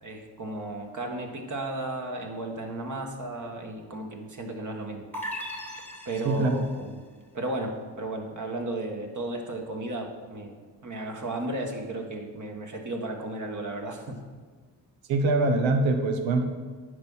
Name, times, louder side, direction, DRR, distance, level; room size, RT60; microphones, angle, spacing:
voice 1, 0.0-5.1 6.0-7.0 7.3-10.6 10.8-14.2, right 2 dB, 40° right, 2 dB, 1.6 m, -34 dB
sound 1, 5.1-6.8, equal, 5° left, 1.4 m, -37 dB
voice 2, 15.1-16.4, right 2 dB, 80° right, 5 dB, 1.0 m, -23 dB
10.0 x 4.7 x 5.6 m, 1.5 s
supercardioid pair, 50°, 45 cm